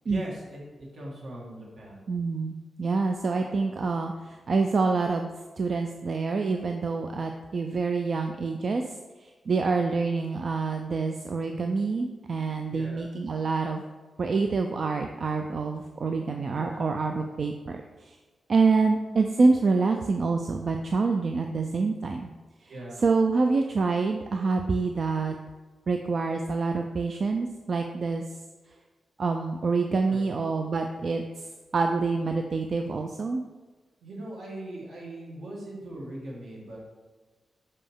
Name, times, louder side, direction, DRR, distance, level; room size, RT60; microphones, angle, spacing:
voice 1, 0.1-2.0 12.7-13.1 16.5-16.9 22.7-23.0 30.1-30.5 34.0-36.8, right 1 dB, 70° right, -3 dB, 1.7 m, -40 dB
voice 2, 2.1-5.3 5.6-8.8 9.2-13.8 14.2-17.8 18.1-18.2 18.5-22.3 23.0-25.4 25.9-28.2 29.2-31.2 31.7-33.4, right 4 dB, 45° right, 4 dB, 0.3 m, -26 dB
5.5 x 5.1 x 3.5 m, 1.3 s
wide cardioid pair, 165°, 0 cm